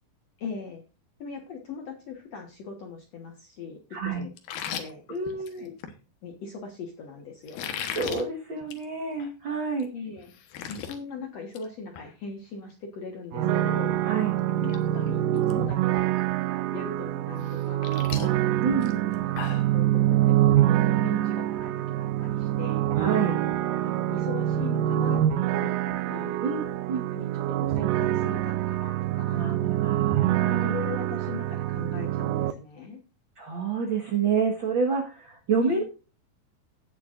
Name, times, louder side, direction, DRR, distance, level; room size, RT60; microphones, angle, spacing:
voice 1, 0.4-0.8 1.2-4.3 4.6-5.0 5.5-5.7 6.2-7.7 9.9-10.3 10.7-13.9 14.5-16.2 16.7-18.5 19.1-20.6 21.0-22.9 23.8-26.4 27.1-29.5 30.5-33.0 35.6-35.8, left 5 dB, 60° left, 2 dB, 2.1 m, -40 dB
voice 2, 3.9-4.3 5.1-5.7 7.9-9.9 14.0-14.4 18.6-19.0 22.9-23.4 26.4-27.0 29.3-30.8 33.4-35.8, right 5 dB, 50° right, 2 dB, 1.6 m, -28 dB
sound 1, 4.4-6.0 7.5-8.2 8.6-8.9 9.2-9.3 9.8-9.9 10.2-11.0 11.3-11.7 12.0-12.1 13.9-14.0 14.5-14.8 15.1-15.5 16.0-16.1 17.4-19.7, left 9 dB, 80° left, 3.0 m, -37 dB
sound 2, 13.3-32.5, right 13 dB, 75° right, 2.1 m, -25 dB
17.5 x 7.0 x 2.5 m, 0.34 s
omnidirectional pair, 4.1 m